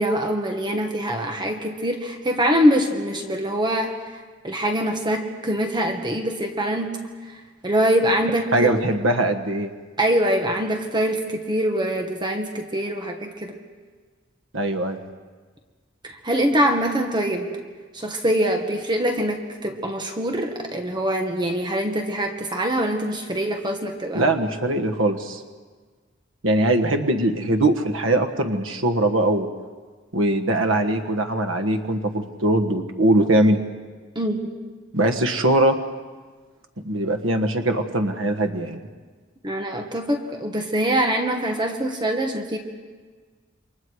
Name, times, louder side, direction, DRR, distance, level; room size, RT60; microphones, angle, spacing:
voice 1, 0.0-7.0 7.6-8.7 10.0-13.6 16.0-17.5 17.9-24.3 34.2-34.4 39.4-42.6, equal, 25° right, 3 dB, 1.7 m, -24 dB
voice 2, 8.5-9.7 14.5-15.0 24.1-25.4 26.4-29.5 30.1-33.6 34.9-35.7 36.8-38.8, right 1 dB, 80° right, 7 dB, 1.5 m, -21 dB
29.0 x 25.5 x 4.8 m, 1.5 s
head